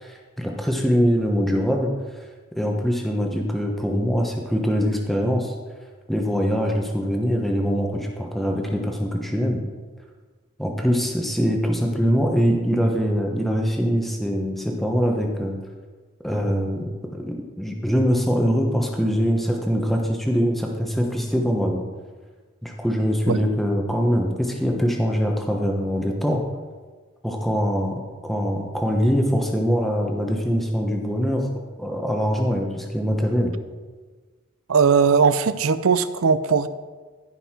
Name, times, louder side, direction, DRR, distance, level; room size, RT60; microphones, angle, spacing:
voice 1, 0.0-1.9 2.6-5.5 6.1-9.6 10.6-15.6 16.2-21.8 22.6-26.4 27.2-31.5 31.8-33.5, equal, ahead, 1 dB, 1.1 m, -23 dB
voice 2, 34.7-36.7, right 5 dB, 85° right, 14 dB, 0.5 m, -19 dB
14.5 x 5.7 x 4.4 m, 1.4 s
head